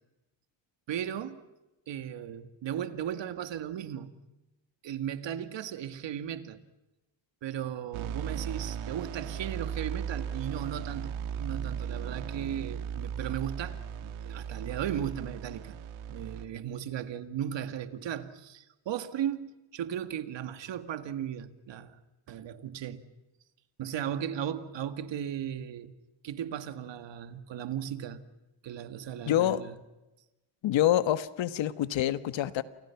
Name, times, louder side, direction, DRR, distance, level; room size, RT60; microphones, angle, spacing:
voice 1, 0.9-1.4 1.9-4.2 4.8-6.6 7.4-15.7 16.1-22.0 22.3-23.0 23.8-25.9 26.2-28.2 28.6-29.8, right 10 dB, 65° right, 2.1 m, -36 dB
sound 1, 7.9-16.5, right 8 dB, 85° right, 1.9 m, -37 dB
voice 2, 29.3-29.6 30.6-32.6, left 12 dB, 70° left, 1.4 m, -26 dB
29.0 x 28.5 x 5.9 m
cardioid pair, 125°, 47 cm